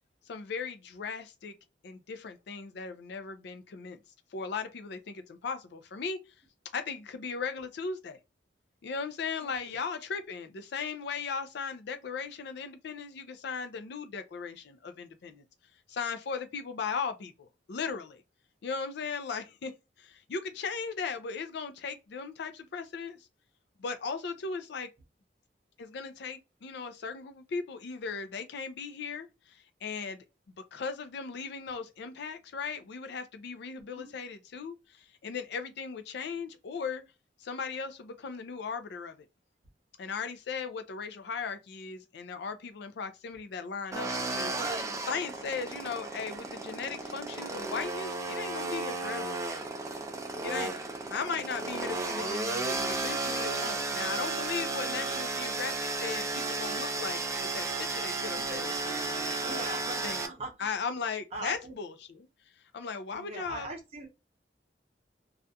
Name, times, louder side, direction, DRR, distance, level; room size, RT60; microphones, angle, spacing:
voice 1, 0.3-1.5 1.8-4.0 4.3-6.2 6.7-8.2 8.8-15.4 15.9-18.2 18.6-19.7 20.0-23.2 23.8-24.9 25.8-30.2 30.7-37.0 37.4-39.3 40.0-49.4 50.4-50.7 51.1-59.6 60.0-60.2 60.6-62.3 62.7-63.7, left 5 dB, 65° left, 0.4 m, -37 dB
voice 2, 9.4-9.8 33.9-34.1 51.0-51.4 52.1-52.5 54.9-55.2 58.3-58.8 59.4-60.8 61.3-61.7 63.1-64.1, right 2 dB, 35° right, 0.8 m, -43 dB
ice drill motor chainsaw drilling nearby, 43.9-60.3, right 3 dB, 15° right, 0.3 m, -34 dB
2.4 x 2.2 x 2.6 m
head